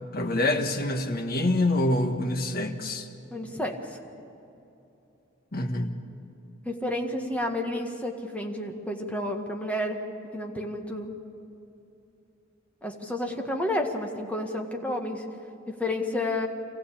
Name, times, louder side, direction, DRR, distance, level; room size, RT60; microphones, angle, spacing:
voice 1, 0.1-3.1 5.5-5.9, left 1 dB, 50° left, 5 dB, 1.5 m, -26 dB
voice 2, 3.3-3.7 6.6-10.0 10.3-11.1 12.8-15.2 15.7-16.5, left 1 dB, 5° left, 2 dB, 1.8 m, -30 dB
26.5 x 15.5 x 8.7 m, 2.8 s
head